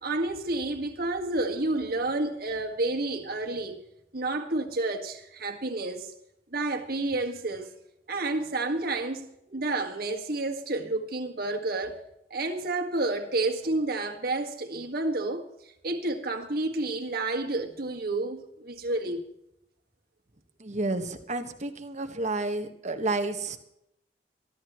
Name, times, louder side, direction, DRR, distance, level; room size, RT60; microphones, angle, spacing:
voice 1, 0.0-3.8 4.1-6.1 6.5-7.7 8.1-12.0 12.3-15.4 15.8-19.2, right 2 dB, 55° right, 1.8 m, -30 dB
voice 2, 20.6-23.6, right 2 dB, 40° right, 1.4 m, -30 dB
23.0 x 13.0 x 3.1 m
head